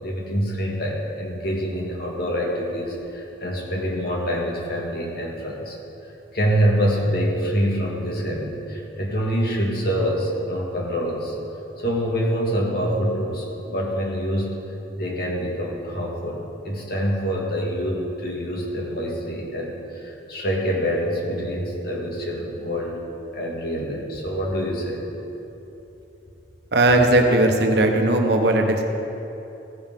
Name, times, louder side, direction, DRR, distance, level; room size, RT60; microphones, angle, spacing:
voice 1, 0.0-5.8 6.3-11.4 11.8-14.6 15.0-23.0 23.3-25.0, equal, 60° left, -2 dB, 1.8 m, -26 dB
voice 2, 26.7-28.8, right 1 dB, 65° right, 3 dB, 1.0 m, -18 dB
15.5 x 5.6 x 5.3 m, 3.0 s
head